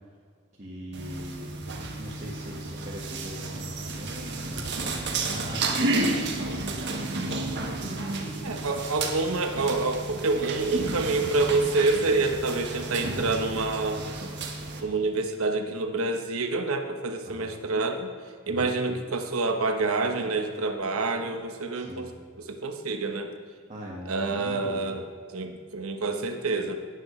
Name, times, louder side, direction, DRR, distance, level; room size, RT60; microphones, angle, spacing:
voice 1, 0.6-1.6 2.0-6.1 6.5-8.6 17.2-17.5 18.5-18.8 21.7-22.1 23.7-24.9, equal, 35° right, -5 dB, 1.6 m, -41 dB
sound 1, 0.9-14.8, right 2 dB, 55° right, 1.3 m, -32 dB
voice 2, 8.4-14.0 14.8-18.1 18.5-22.1 22.5-23.3 24.1-25.0 25.3-26.8, right 3 dB, 85° right, 6 dB, 1.1 m, -27 dB
17.0 x 9.1 x 3.2 m, 2.1 s
head